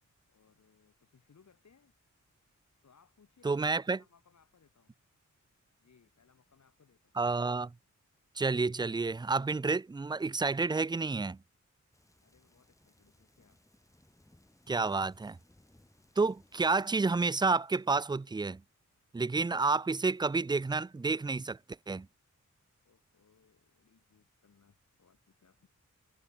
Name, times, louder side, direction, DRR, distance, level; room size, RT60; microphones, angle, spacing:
voice 1, 0.3-1.9 2.8-4.9 5.8-7.2 12.2-13.6 22.8-25.7, left 6 dB, 65° left, 4.4 m, -66 dB
voice 2, 3.4-4.0 7.2-7.7 8.4-11.4 14.7-15.4 16.2-18.6 19.1-21.6 21.9-22.1, right 3 dB, 15° right, 0.3 m, -30 dB
sound 1, 11.9-17.0, left 1 dB, 10° left, 2.5 m, -65 dB
wide cardioid pair, 175°, 31 cm